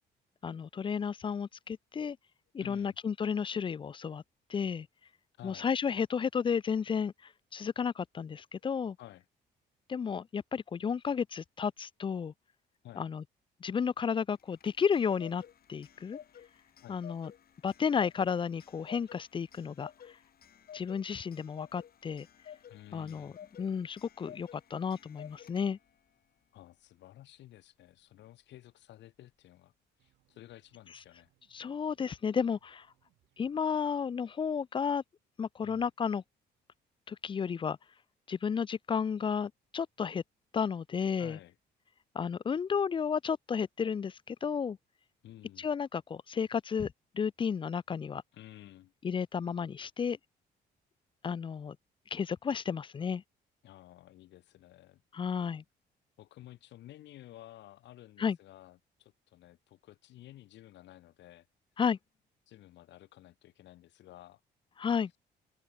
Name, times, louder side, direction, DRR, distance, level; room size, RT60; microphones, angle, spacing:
voice 1, 0.4-2.2 2.5-4.2 4.5-4.9 5.4-9.0 9.9-12.3 13.0-13.2 13.6-15.4 15.7-16.2 16.9-17.3 17.6-19.9 20.7-22.3 22.9-23.3 23.6-25.8 31.5-32.9 33.4-35.0 35.4-36.2 37.1-37.8 38.3-40.2 40.5-41.4 42.1-44.8 45.6-48.2 49.0-50.2 51.2-51.8 52.1-53.2 55.1-55.6 58.2-58.4 61.8-62.0 64.8-65.1, left 6 dB, 30° left, 0.4 m, -32 dB
voice 2, 2.6-3.0 5.4-5.7 9.0-9.3 12.8-13.0 16.8-17.0 22.7-23.4 26.5-29.7 30.0-31.3 35.6-35.9 41.2-41.5 45.2-45.7 48.3-48.9 53.6-55.0 56.2-61.5 62.5-64.4, left 14 dB, 80° left, 2.6 m, -53 dB
Clock, 14.4-26.0, left 9 dB, 55° left, 4.7 m, -53 dB
sound 1, 30.0-34.4, right 16 dB, 85° right, 6.6 m, -75 dB
open air
cardioid pair, 95°, 18 cm